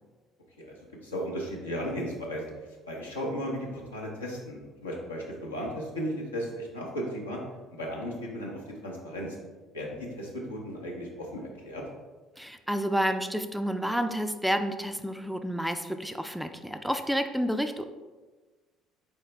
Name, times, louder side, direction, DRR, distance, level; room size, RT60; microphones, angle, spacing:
voice 1, 1.0-2.4 2.9-7.4 7.7-9.4 9.7-11.8, equal, 85° left, -2 dB, 0.7 m, -35 dB
voice 2, 12.4-17.8, equal, ahead, 8 dB, 0.3 m, -30 dB
4.4 x 3.6 x 3.2 m, 1.3 s
figure-of-eight pair, 55°, 0 cm